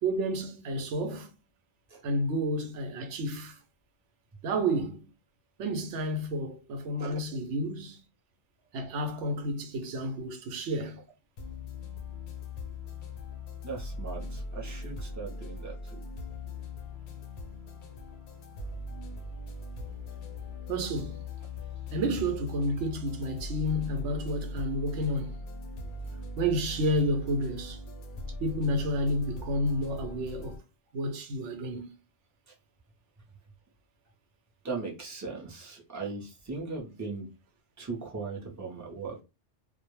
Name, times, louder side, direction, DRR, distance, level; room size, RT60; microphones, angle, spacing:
voice 1, 0.0-1.3 2.0-3.6 4.4-5.1 5.6-8.0 8.7-11.0 20.7-21.2 21.9-25.4 26.4-27.8 28.4-30.6 30.9-31.9, equal, 80° right, 0.9 m, -30 dB
voice 2, 7.0-7.4 13.6-16.0 32.5-32.6 34.6-37.3 37.8-39.2, right 4 dB, 20° right, 0.5 m, -39 dB
sound 1, 11.4-30.6, left 2 dB, 60° left, 0.6 m, -40 dB
2.2 x 2.1 x 2.9 m
omnidirectional pair, 1.2 m